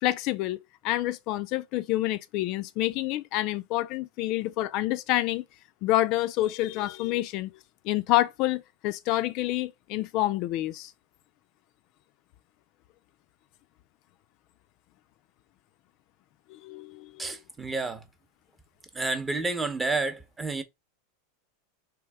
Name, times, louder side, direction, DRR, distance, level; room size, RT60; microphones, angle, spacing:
voice 1, 0.0-5.4 5.8-7.5 7.8-10.9 16.5-17.3, left 15 dB, 45° left, 0.3 m, -28 dB
voice 2, 17.2-18.0 18.9-20.6, right 3 dB, 10° right, 0.7 m, -30 dB
3.3 x 3.2 x 4.7 m
supercardioid pair, 145°, 0 cm